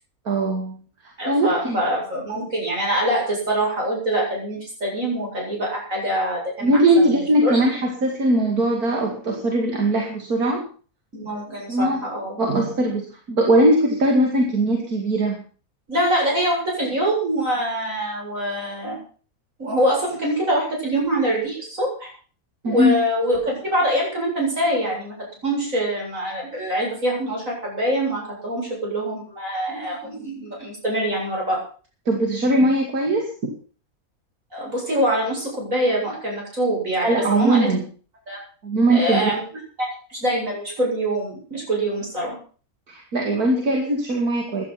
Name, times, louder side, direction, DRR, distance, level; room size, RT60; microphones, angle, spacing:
voice 1, 0.2-1.8 6.6-10.6 11.7-12.0 12.4-15.4 22.6-23.0 32.1-33.5 37.0-37.8 38.6-39.3 42.9-44.6, right 1 dB, 85° right, 1 dB, 3.0 m, -20 dB
voice 2, 1.2-7.6 11.1-12.7 15.9-19.0 19.6-22.1 22.7-25.1 25.4-31.6 34.5-37.7 38.3-38.4 38.9-39.4 39.8-42.4, right 1 dB, 60° right, -1 dB, 8.6 m, -24 dB
16.0 x 11.5 x 6.0 m, 0.41 s
omnidirectional pair, 1.5 m